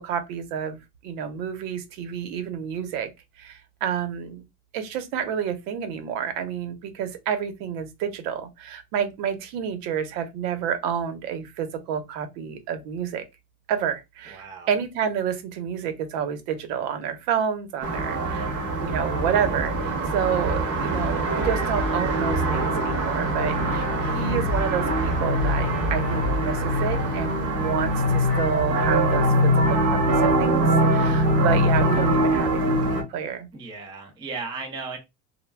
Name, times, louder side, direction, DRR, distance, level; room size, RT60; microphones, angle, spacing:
voice 1, 0.0-3.1 3.4-4.4 4.7-13.2 13.7-18.5 18.8-33.5, right 8 dB, 75° right, 0.9 m, -29 dB
voice 2, 14.3-14.7 33.5-35.0, right 4 dB, 10° right, 0.3 m, -35 dB
sound 1, 17.8-33.0, right 1 dB, 30° right, 0.7 m, -23 dB
2.2 x 2.2 x 3.2 m
supercardioid pair, 140°, 47 cm